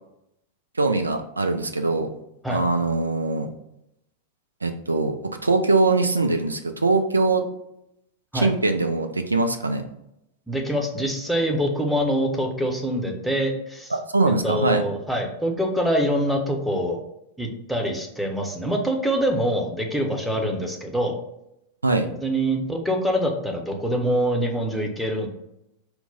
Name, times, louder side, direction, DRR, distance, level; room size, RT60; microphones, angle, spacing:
voice 1, 0.8-2.1 2.5-3.5 4.6-7.4 8.3-9.8 13.9-14.8 21.8-22.1, right 3 dB, 80° right, 6 dB, 0.4 m, -22 dB
voice 2, 10.5-13.9 14.4-17.0 17.4-21.2 22.2-25.3, equal, ahead, 2 dB, 0.7 m, -25 dB
4.5 x 2.1 x 3.8 m, 0.82 s
figure-of-eight pair, 90°, 0 cm